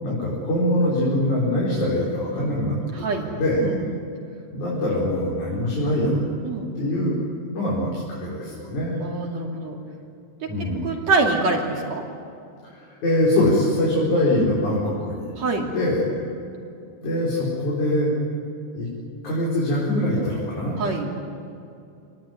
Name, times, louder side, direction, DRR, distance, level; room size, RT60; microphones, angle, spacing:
voice 1, 0.0-3.7 4.5-6.2 6.8-7.2 7.5-9.0 10.5-10.9 13.0-15.3 15.7-16.1 17.0-18.1 18.7-18.9 19.2-20.8, left 1 dB, 70° left, -6 dB, 6.4 m, -23 dB
voice 2, 2.4-3.3 3.6-4.1 6.4-6.7 9.0-9.8 10.8-12.0 15.4-15.7 20.8-21.1, right 3 dB, 60° right, 0 dB, 3.8 m, -25 dB
27.5 x 20.0 x 9.6 m, 2.6 s
omnidirectional pair, 3.6 m